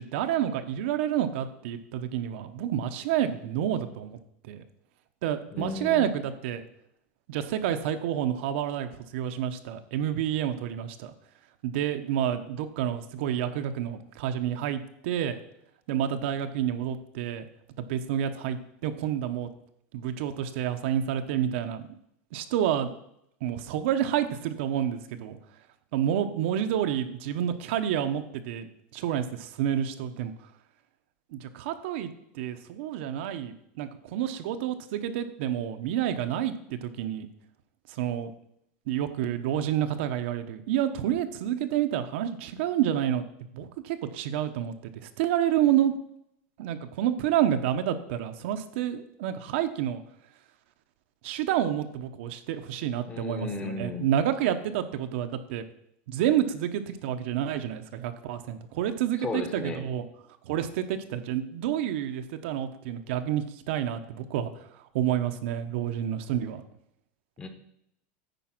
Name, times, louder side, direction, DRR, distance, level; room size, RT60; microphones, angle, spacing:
voice 1, 0.0-4.2 4.5-4.6 5.2-6.6 7.3-11.1 11.6-15.4 15.9-17.5 17.8-19.5 19.9-21.9 22.3-22.9 23.4-25.4 25.9-30.3 31.3-37.3 37.9-38.3 38.9-43.2 43.5-44.7 45.0-45.9 46.6-50.0 51.2-55.6 56.1-60.1 60.4-64.5 64.9-66.6, right 10 dB, 65° right, 8 dB, 0.8 m, -29 dB
voice 2, 5.5-6.1 53.1-54.1 59.2-59.8 67.4-67.5, left 3 dB, 15° left, 6 dB, 0.9 m, -34 dB
9.1 x 4.7 x 6.0 m, 0.74 s
supercardioid pair, 165°, 7 cm